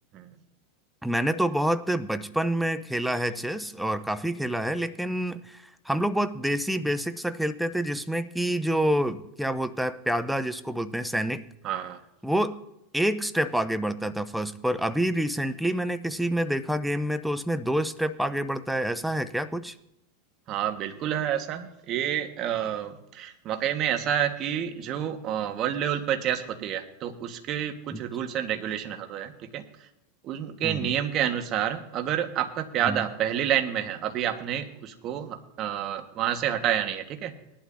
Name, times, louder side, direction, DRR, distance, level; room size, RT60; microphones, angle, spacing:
voice 1, 1.0-11.4 12.2-12.6 12.9-19.7 27.9-28.0 30.6-30.9 32.8-33.0, right 1 dB, ahead, 12 dB, 0.6 m, -27 dB
voice 2, 11.6-12.0 20.5-29.6 30.2-37.3, right 10 dB, 45° right, 7 dB, 1.4 m, -29 dB
19.0 x 11.5 x 2.7 m, 0.86 s
hypercardioid pair, 110°, 0 cm